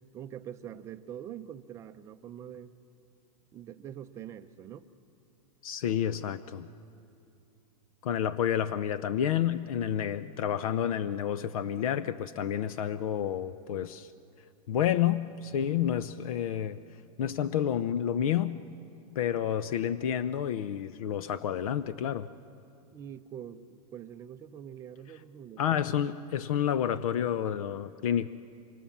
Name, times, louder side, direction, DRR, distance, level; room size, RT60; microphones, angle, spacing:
voice 1, 0.1-2.7 3.5-4.9 22.9-25.8, right 9 dB, 15° right, 9 dB, 0.5 m, -44 dB
voice 2, 5.6-6.7 8.0-14.1 14.7-16.8 17.2-18.6 19.1-22.3 25.6-28.3, left 9 dB, 70° left, 14 dB, 0.7 m, -29 dB
26.5 x 24.5 x 7.3 m, 2.6 s
supercardioid pair, 165°, 19 cm